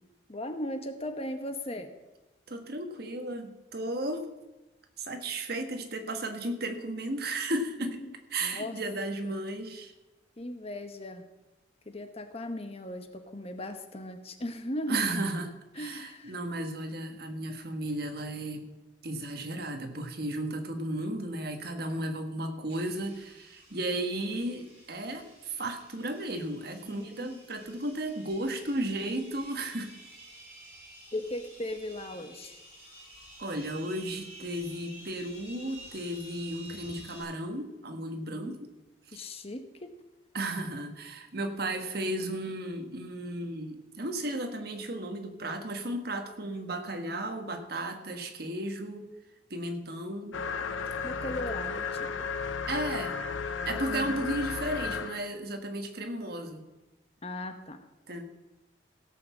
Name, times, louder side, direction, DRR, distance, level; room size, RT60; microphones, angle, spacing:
voice 1, 0.3-1.9 7.8-8.1 8.4-8.8 9.2-9.3 10.4-11.3 11.9-15.2 15.8-16.3 26.8-27.5 31.1-32.6 38.3-38.6 39.1-39.9 50.7-52.3 53.9-54.3 57.2-57.8, left 1 dB, 30° left, 7 dB, 1.0 m, -38 dB
voice 2, 2.5-4.3 5.0-8.0 8.3-9.9 14.9-15.5 15.7-18.7 19.0-29.9 33.4-38.7 39.1-39.3 40.3-49.0 49.5-50.4 52.7-53.2 53.6-56.7 58.1-58.2, right 1 dB, 55° right, 6 dB, 1.4 m, -34 dB
Engine Startup, 22.7-37.2, right 1 dB, 30° right, 5.6 m, -51 dB
sound 1, 50.3-55.3, left 5 dB, 85° left, 0.7 m, -34 dB
16.5 x 5.8 x 7.2 m, 1.1 s
head